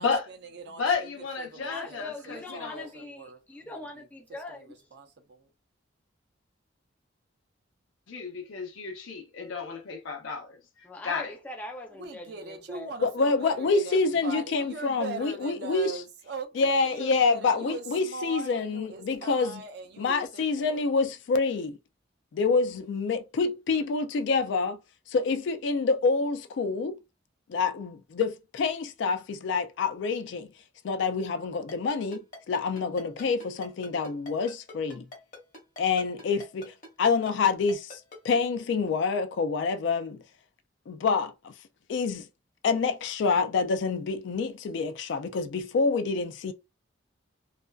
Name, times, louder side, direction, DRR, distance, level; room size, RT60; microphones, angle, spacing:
voice 1, 0.0-1.1 1.4-4.1 4.6-5.5 12.0-20.8, right 4 dB, 55° right, 0.5 m, -41 dB
voice 2, 0.7-2.9 8.1-10.6 11.0-11.3, left 5 dB, 85° left, 0.7 m, -32 dB
voice 3, 1.5-4.7 10.8-12.9, left 2 dB, 10° left, 0.5 m, -42 dB
voice 4, 13.0-15.9 16.6-19.6 20.0-21.8 22.3-24.8 25.1-27.0 27.5-30.5 30.8-35.0 35.8-40.2 40.9-41.5 41.9-42.3 42.6-46.5, left 4 dB, 65° left, 0.3 m, -27 dB
Ringtone, 31.7-38.4, left 2 dB, 40° left, 0.9 m, -44 dB
2.4 x 2.2 x 2.3 m
head